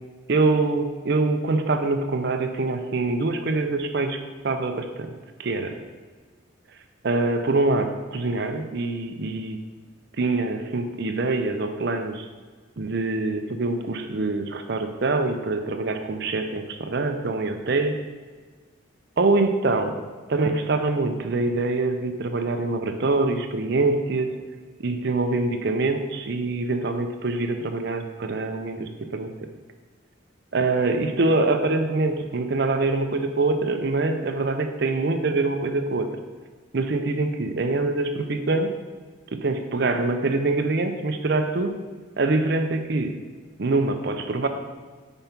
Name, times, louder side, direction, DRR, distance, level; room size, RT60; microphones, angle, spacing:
voice 1, 0.3-4.2 4.4-5.1 5.4-5.8 7.0-9.6 10.2-12.3 12.8-18.0 19.2-20.0 20.3-24.3 24.8-29.5 30.5-36.2 36.7-38.7 39.3-41.7 42.2-43.1 43.6-44.5, right 3 dB, 55° right, 6 dB, 0.5 m, -24 dB
5.3 x 4.5 x 5.7 m, 1.5 s
head